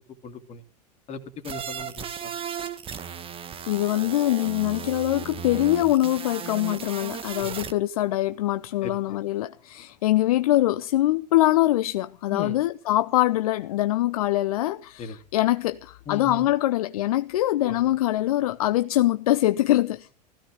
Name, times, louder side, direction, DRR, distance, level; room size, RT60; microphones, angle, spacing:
voice 1, 0.2-0.6 1.1-2.3 7.4-7.5 8.8-9.2 12.3-12.6 15.0-15.2 16.1-16.5 17.6-17.8, left 4 dB, 30° left, 2.8 m, -36 dB
sound 1, 1.4-7.7, right 8 dB, 25° right, 1.6 m, -36 dB
voice 2, 3.7-20.1, left 15 dB, 60° left, 0.7 m, -23 dB
16.5 x 15.5 x 5.0 m
figure-of-eight pair, 90°, 21 cm